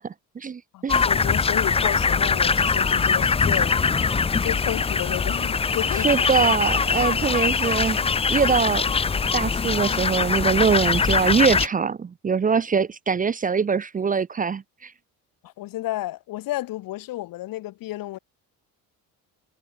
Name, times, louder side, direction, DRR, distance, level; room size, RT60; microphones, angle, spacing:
voice 1, 0.0-1.1 6.0-8.0 8.3-8.8 9.3-14.9, right 5 dB, 25° right, 0.8 m, -23 dB
voice 2, 0.7-3.8 4.4-6.3 15.4-18.2, left 16 dB, 70° left, 2.1 m, -32 dB
sound 1, 0.9-11.7, left 5 dB, 15° left, 0.6 m, -22 dB
cardioid pair, 135°, 35 cm